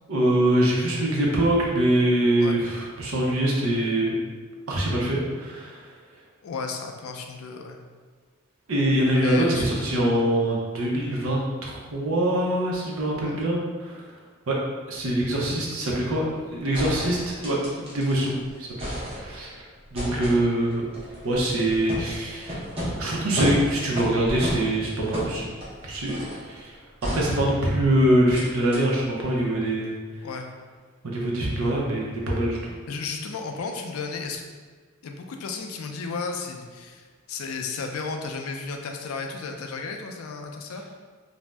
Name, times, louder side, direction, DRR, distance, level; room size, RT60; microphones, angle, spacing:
voice 1, 0.1-4.1 4.7-5.8 8.7-14.0 14.5-14.6 14.9-18.3 18.6-18.9 19.2-19.5 19.9-20.9 21.2-22.6 23.0-25.5 25.8-26.2 26.4-26.7 27.1-30.0 31.0-32.7, right 1 dB, 85° right, -3 dB, 0.6 m, -24 dB
voice 2, 6.4-7.8 9.1-10.1 13.2-13.4 15.5-15.6 20.0-20.5 21.4-21.5 30.2-30.5 32.9-34.4 35.0-40.8, left 4 dB, 85° left, 4 dB, 0.4 m, -34 dB
sound 1, 16.7-18.3 18.6-19.5 19.9-26.5 27.0-27.9 28.3-28.4 28.7-28.8, equal, 25° right, 0.7 m, -33 dB
2.5 x 2.0 x 3.3 m, 1.5 s
head